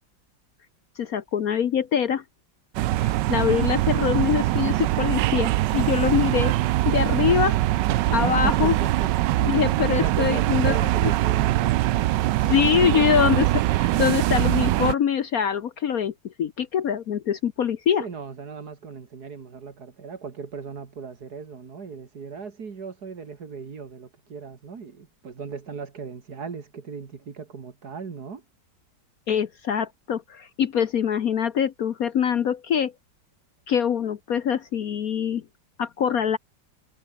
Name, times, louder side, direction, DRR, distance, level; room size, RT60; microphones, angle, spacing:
voice 1, 1.0-2.2 3.0-6.5 6.8-7.6 8.1-8.7 9.4-11.1 12.4-18.0 29.3-32.9 33.7-35.4 35.8-36.4, left 8 dB, 55° left, 1.2 m, -24 dB
sound 1, 2.7-14.9, right 15 dB, 75° right, 1.2 m, -22 dB
voice 2, 7.9-9.1 10.0-11.9 18.0-28.4, right 5 dB, 55° right, 2.5 m, -37 dB
omnidirectional pair, 2.1 m